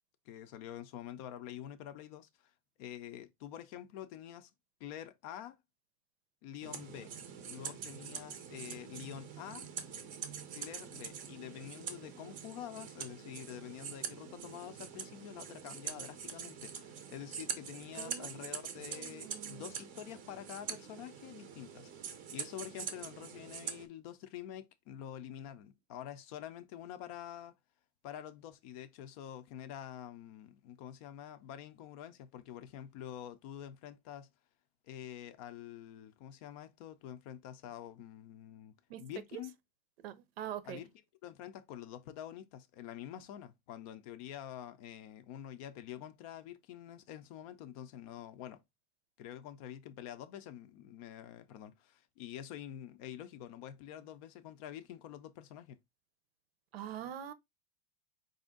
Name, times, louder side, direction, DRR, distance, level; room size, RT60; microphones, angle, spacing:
voice 1, 0.3-2.5 2.8-4.5 4.8-5.6 6.4-7.1 7.4-9.7 10.5-21.9 22.3-27.5 28.0-34.3 34.8-39.5 40.6-40.9 41.2-48.6 49.2-55.8, left 10 dB, 35° left, 0.5 m, -47 dB
sound 1, 6.6-23.9, right 7 dB, 25° right, 0.6 m, -44 dB
voice 2, 17.9-18.5 18.9-19.7 38.9-39.0 39.3-39.4 40.0-40.8 56.7-57.3, right 10 dB, 75° right, 0.7 m, -44 dB
4.8 x 2.6 x 3.6 m
supercardioid pair, 160°, 30 cm